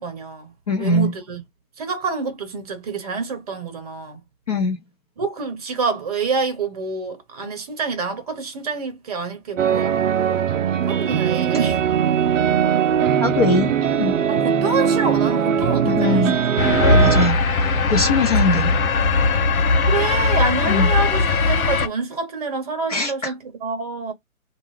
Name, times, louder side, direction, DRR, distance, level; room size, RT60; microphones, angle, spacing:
voice 1, 0.0-1.4 1.8-4.2 5.2-10.5 10.9-11.8 14.3-16.3 16.9-17.1 18.4-18.6 19.9-24.1, right 4 dB, 25° right, 0.9 m, -27 dB
voice 2, 0.7-1.1 4.5-4.8 13.2-13.7 14.0-14.2 15.8-16.4 16.8-17.4 17.9-18.7 20.7-20.9 22.9-23.3, left 3 dB, 25° left, 0.7 m, -21 dB
sound 1, 9.6-17.3, right 8 dB, 60° right, 0.5 m, -20 dB
sound 2, 16.6-21.9, left 3 dB, 80° left, 0.8 m, -19 dB
2.4 x 2.3 x 3.1 m
figure-of-eight pair, 140°, 43 cm